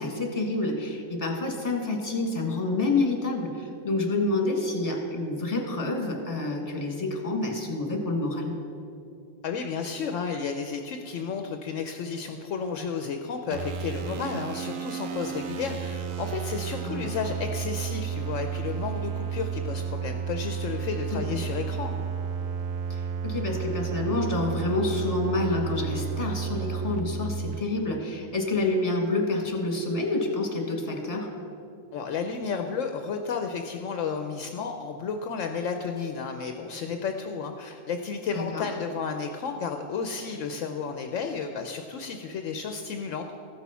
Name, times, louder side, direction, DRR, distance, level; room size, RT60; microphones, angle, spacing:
voice 1, 0.0-8.5 16.8-17.3 21.1-21.5 22.9-31.3 38.3-38.7, left 2 dB, 25° left, 1 dB, 1.5 m, -28 dB
voice 2, 9.4-22.1 31.9-43.3, left 5 dB, 70° left, 5 dB, 0.9 m, -32 dB
sound 1, 13.5-27.6, right 7 dB, 80° right, 1.0 m, -32 dB
14.5 x 6.1 x 5.6 m, 2.7 s
omnidirectional pair, 1.4 m